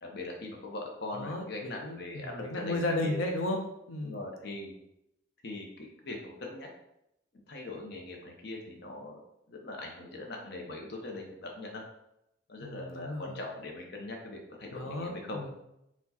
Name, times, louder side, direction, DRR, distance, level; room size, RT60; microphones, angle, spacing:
voice 1, 0.0-3.2 4.0-4.7 5.4-6.7 7.5-9.2 9.5-11.8 12.5-15.5, left 2 dB, 55° left, 1 dB, 0.7 m, -41 dB
voice 2, 1.2-3.6 3.9-4.2 12.6-13.4 14.7-15.5, left 2 dB, 85° left, 2 dB, 0.7 m, -34 dB
4.6 x 2.3 x 4.0 m, 0.83 s
head